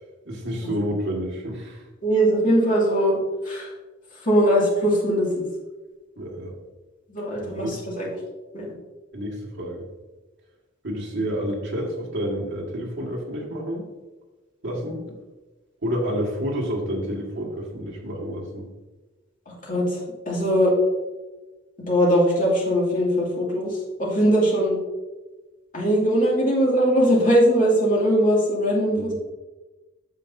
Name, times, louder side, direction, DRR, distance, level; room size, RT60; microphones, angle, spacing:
voice 1, 0.3-1.9 6.2-6.5 7.4-7.8 9.1-9.8 10.8-13.9 14.6-15.0 15.8-18.7 29.0-29.1, equal, 65° right, -1 dB, 1.9 m, -29 dB
voice 2, 2.0-3.7 4.1-5.5 7.1-8.1 8.5-8.7 19.5-20.7 21.9-24.8 25.7-29.1, equal, 40° left, -4 dB, 2.4 m, -21 dB
8.7 x 7.0 x 2.7 m, 1.2 s
head